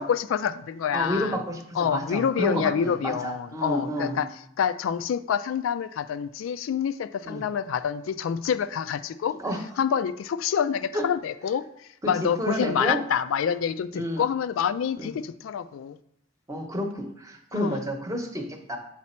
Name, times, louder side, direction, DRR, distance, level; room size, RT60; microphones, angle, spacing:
voice 1, 0.0-1.4 1.7-4.3 4.6-9.4 9.8-16.0 17.5-17.8, left 7 dB, 85° left, 13 dB, 0.3 m, -27 dB
voice 2, 0.9-1.6 1.9-4.2 7.2-7.4 9.4-9.6 10.9-11.0 12.0-13.0 13.9-14.2 15.0-15.1 16.5-18.8, equal, 15° right, 3 dB, 0.8 m, -30 dB
7.3 x 4.1 x 4.3 m, 0.72 s
head